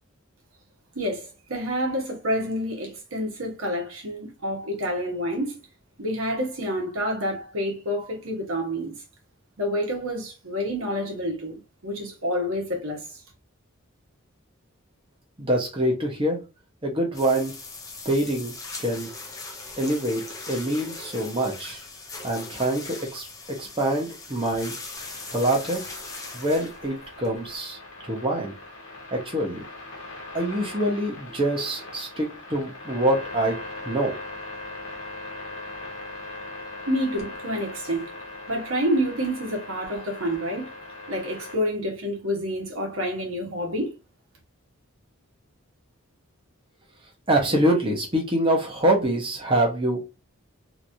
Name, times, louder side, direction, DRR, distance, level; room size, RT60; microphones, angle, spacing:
voice 1, 0.9-5.6 6.0-9.0 9.6-13.2 36.9-38.1 38.5-40.7 41.1-43.9, equal, 70° right, 1.2 m, -28 dB
voice 2, 15.4-16.4 16.8-17.5 18.0-18.5 18.8-19.1 19.8-21.8 22.2-23.3 23.6-24.7 25.3-25.8 26.3-27.8 28.0-28.5 29.1-29.6 30.3-34.2 47.3-50.1, right 1 dB, 25° right, 1.0 m, -25 dB
sound 1, 17.1-27.5, left 3 dB, 15° left, 0.5 m, -40 dB
sound 2, 24.9-41.6, left 2 dB, 60° left, 1.1 m, -40 dB
3.0 x 3.0 x 2.6 m
head